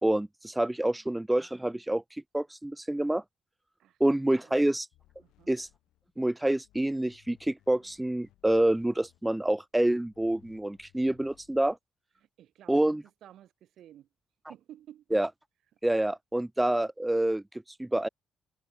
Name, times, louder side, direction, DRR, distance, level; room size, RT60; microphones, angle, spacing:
voice 1, 0.0-3.2 4.0-4.9 5.5-5.7 6.2-11.8 12.7-13.0 15.1-15.3 15.8-17.4 17.8-18.1, right 1 dB, 10° right, 0.6 m, -27 dB
voice 2, 0.7-1.2 3.8-4.0 4.4-4.6 5.2-5.5 12.2-13.0 13.2-14.1 14.5-15.0, right 11 dB, 75° right, 2.7 m, -53 dB
sound 1, 4.9-6.3 6.6-9.5 10.1-11.8, left 15 dB, 90° left, 6.6 m, -64 dB
cardioid pair, 90°, 0 cm